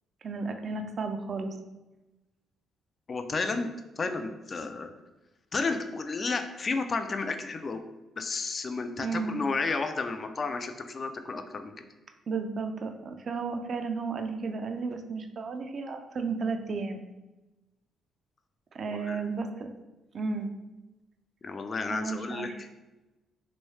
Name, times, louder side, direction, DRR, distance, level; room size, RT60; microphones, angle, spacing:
voice 1, 0.2-1.5 9.0-9.4 12.3-17.0 18.7-19.7 20.1-20.5 21.9-22.5, right 4 dB, 50° right, 6 dB, 0.4 m, -33 dB
voice 2, 3.1-3.7 4.0-4.9 5.5-7.8 8.2-11.7 18.9-19.3 21.4-22.7, left 4 dB, 40° left, 8 dB, 0.3 m, -32 dB
3.1 x 2.6 x 3.1 m, 1.0 s
cardioid pair, 90°, 0 cm